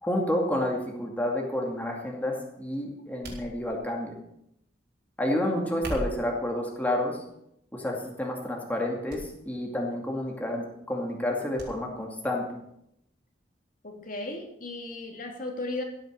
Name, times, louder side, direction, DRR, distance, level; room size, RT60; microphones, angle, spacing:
voice 1, 0.0-4.1 5.2-7.2 7.7-12.4, left 1 dB, 10° left, -1 dB, 2.4 m, -30 dB
sound 1, 3.2-4.0 5.7-6.4 7.2-7.5 8.0-8.1 9.1-9.3 9.6-9.7 11.6-11.7 12.1-12.2, equal, 65° right, 4.9 m, -38 dB
voice 2, 13.8-15.8, left 2 dB, 50° left, 2 dB, 2.8 m, -35 dB
16.0 x 9.7 x 6.8 m, 0.77 s
head